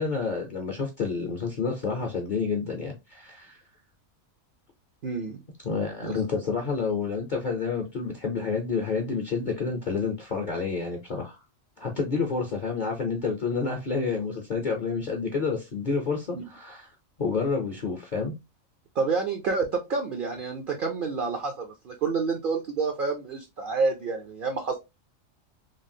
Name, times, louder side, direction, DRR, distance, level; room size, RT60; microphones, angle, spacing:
voice 1, 0.0-3.6 5.6-11.4 11.8-16.9 17.2-18.3, left 4 dB, 50° left, 0.6 m, -29 dB
voice 2, 5.0-5.4 6.0-6.1 16.3-16.4 19.0-24.8, right 4 dB, 60° right, 0.5 m, -28 dB
3.2 x 2.4 x 2.6 m
omnidirectional pair, 1.4 m